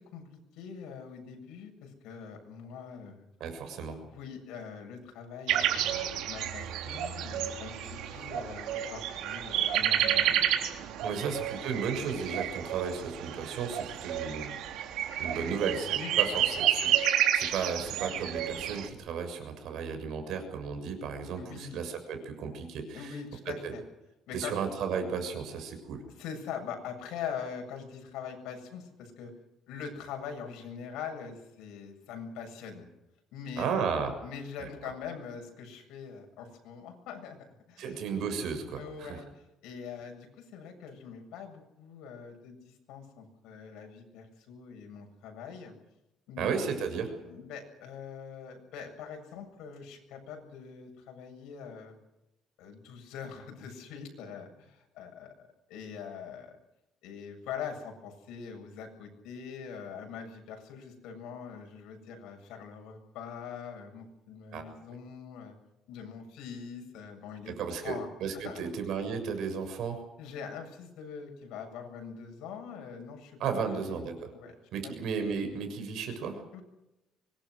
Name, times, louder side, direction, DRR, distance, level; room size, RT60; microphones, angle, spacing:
voice 1, 0.0-3.2 3.9-10.8 11.1-11.2 15.3-15.5 15.9-16.4 21.4-21.8 22.9-23.8 24.3-24.5 26.2-29.3 29.7-32.9 33.3-33.9 34.2-37.4 37.7-38.0 38.8-45.7 46.3-46.6 47.2-52.0 52.6-56.6 57.0-65.6 65.9-68.1 68.4-68.7 70.2-74.0 74.3-74.5 74.8-74.9 76.5-76.6, left 6 dB, 85° left, 5 dB, 7.7 m, -43 dB
voice 2, 3.4-4.0 11.0-14.5 15.2-23.1 23.4-23.7 24.3-26.0 33.6-34.1 34.6-34.9 37.8-39.2 46.4-47.1 64.5-64.6 67.5-70.0 73.4-74.3 74.7-76.4, right 6 dB, 60° right, 7 dB, 6.8 m, -34 dB
sound 1, 5.5-18.9, right 10 dB, 75° right, 3.7 m, -30 dB
25.5 x 22.0 x 6.5 m, 0.92 s
cardioid pair, 170°, 0 cm